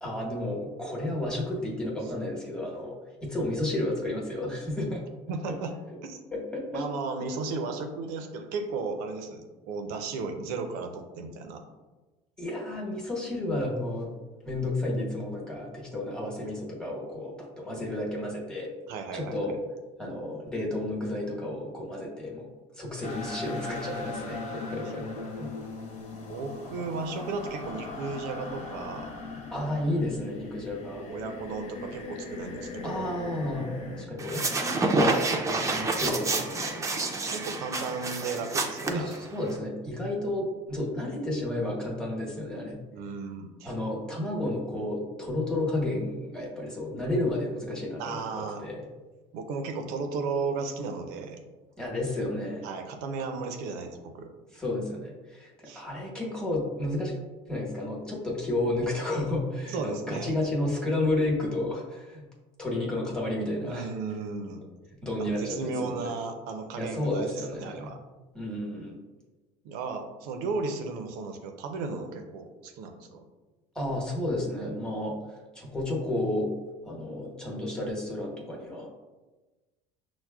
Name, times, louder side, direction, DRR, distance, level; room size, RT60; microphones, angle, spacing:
voice 1, 0.0-5.0 6.3-6.8 12.4-14.1 14.4-18.7 19.1-19.6 20.0-22.5 22.7-25.0 25.4-25.5 29.5-31.0 32.8-33.7 34.0-37.1 38.9-42.8 43.6-48.8 51.8-52.6 54.5-57.1 57.5-62.3 62.6-63.9 65.0-66.1 66.8-67.9 68.3-68.9 73.7-75.2 75.5-76.5 76.8-78.9, left 1 dB, 5° left, -3 dB, 1.1 m, -32 dB
voice 2, 5.3-5.7 6.0-6.2 6.7-11.6 18.9-19.4 26.3-29.1 31.1-33.2 37.3-39.3 42.9-43.7 48.0-48.6 49.3-51.4 52.6-54.3 55.6-55.8 59.7-60.3 63.6-64.6 65.2-68.0 69.6-73.2, right 4 dB, 80° right, 5 dB, 0.6 m, -35 dB
sound 1, 23.0-34.0, left 3 dB, 50° left, 0.5 m, -39 dB
sound 2, 34.2-39.5, right 3 dB, 20° right, 0.5 m, -28 dB
6.1 x 2.0 x 2.3 m, 1.2 s
supercardioid pair, 105°, 15 cm